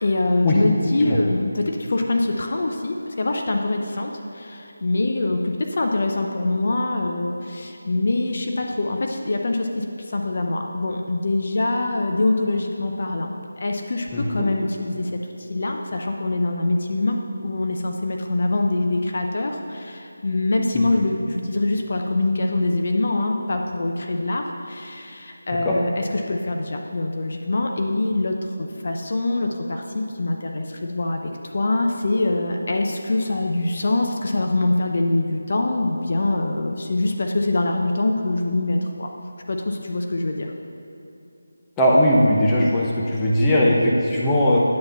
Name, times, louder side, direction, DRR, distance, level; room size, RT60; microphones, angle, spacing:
voice 1, 0.0-17.2 17.4-39.1 39.5-40.5, left 2 dB, 50° left, 2 dB, 0.7 m, -24 dB
voice 2, 14.1-14.5 25.7-25.8 41.8-44.6, left 1 dB, 10° left, -5 dB, 0.8 m, -19 dB
9.4 x 4.8 x 5.6 m, 2.7 s
figure-of-eight pair, 165°, 0 cm